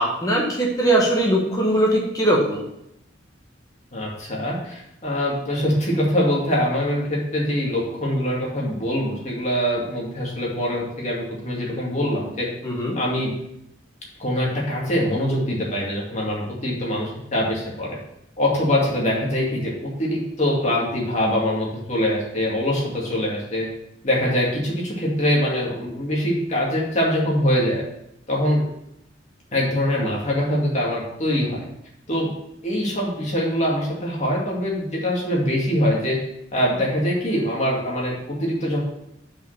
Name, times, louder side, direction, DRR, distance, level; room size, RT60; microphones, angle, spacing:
voice 1, 0.0-2.6 12.6-13.0, right 1 dB, 20° left, -3 dB, 1.3 m, -20 dB
voice 2, 3.9-12.5 12.9-13.4 14.2-18.0 18.4-23.7 24.0-27.8 28.3-28.6 29.5-31.6 32.1-32.4 32.6-36.2 36.5-38.8, equal, 35° left, -3 dB, 2.3 m, -23 dB
5.6 x 5.3 x 6.4 m, 0.80 s
head